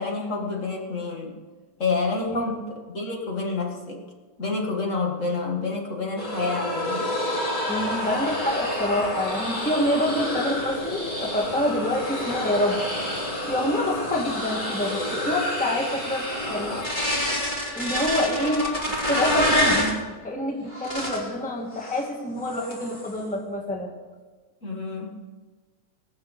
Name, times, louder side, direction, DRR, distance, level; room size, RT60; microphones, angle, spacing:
voice 1, 0.0-1.3 1.8-4.0 4.4-7.1 24.6-25.2, left 3 dB, 45° left, 0 dB, 2.2 m, -28 dB
sound 1, 6.2-20.0 20.7-21.3 21.8-22.1 22.4-23.1, left 1 dB, 25° left, 3.5 m, -28 dB
voice 2, 7.7-12.8 13.4-16.9 17.7-20.0 20.2-23.9, left 1 dB, 5° left, 1 dB, 1.5 m, -27 dB
19.0 x 6.5 x 8.0 m, 1.3 s
omnidirectional pair, 1.8 m